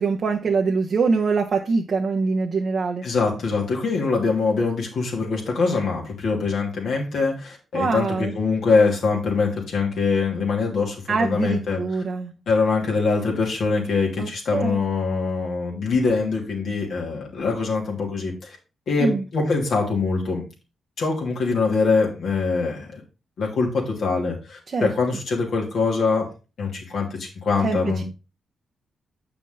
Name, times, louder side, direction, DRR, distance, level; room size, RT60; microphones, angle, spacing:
voice 1, 0.0-3.0 7.7-8.3 11.1-12.3 14.2-14.8 19.0-19.2 24.7-24.9 27.6-28.0, right 4 dB, 55° right, 1.0 m, -24 dB
voice 2, 3.0-11.8 12.5-18.6 18.9-20.4 21.0-23.0 23.4-26.3 26.6-28.0, left 4 dB, 70° left, 3.1 m, -23 dB
8.2 x 5.9 x 3.9 m
hypercardioid pair, 45°, 0 cm